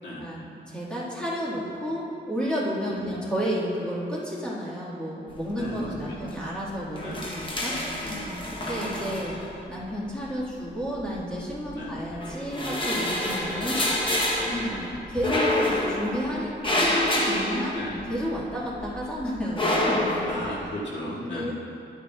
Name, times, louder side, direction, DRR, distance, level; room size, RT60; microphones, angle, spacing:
voice 1, 0.2-7.7 8.5-9.3 9.7-13.8 14.7-14.8 15.1-17.8 18.1-20.4 21.3-21.5, equal, 5° left, -7 dB, 1.7 m, -31 dB
sound 1, 5.4-5.9 6.2-6.4 6.7-9.8 10.7-11.7 12.1-18.4 18.7-20.7, left 1 dB, 25° left, 0.9 m, -28 dB
voice 2, 5.6-6.4 7.0-7.2 8.0-8.9 11.7-12.0 13.5-13.7 14.4-15.0 17.7-18.0 20.3-21.5, left 1 dB, 75° left, -7 dB, 2.1 m, -36 dB
11.0 x 9.5 x 2.3 m, 2.5 s
wide cardioid pair, 170°, 19 cm